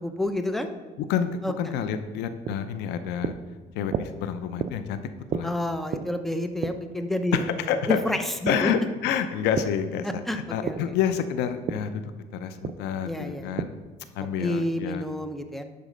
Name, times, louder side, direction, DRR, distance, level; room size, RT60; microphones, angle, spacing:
voice 1, 0.0-0.7 1.4-1.5 5.4-7.5 7.9-8.2 8.4-8.7 10.3-10.8 13.1-13.5 14.4-15.6, left 1 dB, ahead, 7 dB, 0.6 m, -29 dB
voice 2, 1.0-1.3 1.6-3.4 3.7-5.0 5.3-5.5 7.3-8.0 8.5-13.8 14.2-15.0, left 8 dB, 90° left, 10 dB, 0.6 m, -28 dB
sound 1, 1.9-9.8 10.2-14.0, right 7 dB, 45° right, 0.4 m, -35 dB
10.5 x 4.1 x 5.1 m, 1.3 s
cardioid pair, 110°, 17 cm